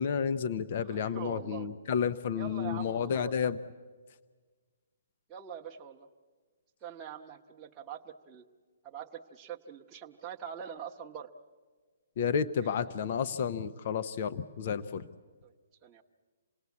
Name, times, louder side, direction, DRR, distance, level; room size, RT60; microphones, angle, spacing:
voice 1, 0.0-3.6 12.2-15.0, left 7 dB, 45° left, 13 dB, 0.7 m, -31 dB
voice 2, 0.8-1.7 2.3-3.3 5.3-6.1 6.8-8.4 8.8-11.3 12.6-12.9 15.4-15.5 15.8-16.0, right 8 dB, 15° right, -3 dB, 1.0 m, -44 dB
27.5 x 19.0 x 8.4 m, 1.4 s
hypercardioid pair, 160°, 0 cm